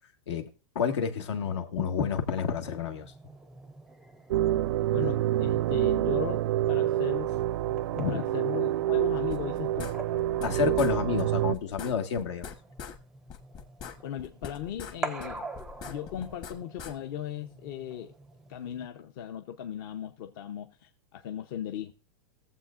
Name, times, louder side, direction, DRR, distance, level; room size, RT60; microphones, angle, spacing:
voice 1, 0.7-3.1 7.9-8.2 10.4-12.5, left 6 dB, 80° left, 1.6 m, -29 dB
sound 1, 1.9-18.9, right 3 dB, 5° right, 0.5 m, -46 dB
sound 2, 4.3-11.6, right 13 dB, 70° right, 0.5 m, -27 dB
voice 2, 4.9-7.4 8.1-9.9 14.0-15.5 15.8-18.1 18.5-21.9, left 10 dB, 50° left, 0.7 m, -37 dB
sound 3, 9.3-10.5 10.8-10.9 11.2-11.3 11.5-13.0 13.3-14.9 15.2-16.9, left 7 dB, 30° left, 1.1 m, -42 dB
21.0 x 7.4 x 2.5 m
supercardioid pair, 155°, 14 cm